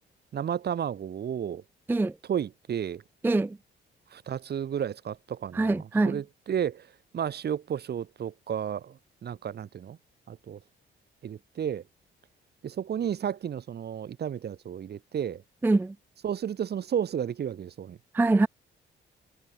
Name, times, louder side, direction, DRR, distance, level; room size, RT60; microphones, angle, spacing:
voice 1, 0.3-1.6 2.3-3.0 4.1-10.0 10.3-10.6 11.2-11.8 12.6-15.4 16.2-18.0, right 9 dB, 55° right, 2.2 m, -32 dB
voice 2, 3.2-3.6 5.5-6.2 15.6-15.9 18.1-18.5, right 2 dB, 10° right, 0.4 m, -24 dB
cardioid pair, 90°, 20 cm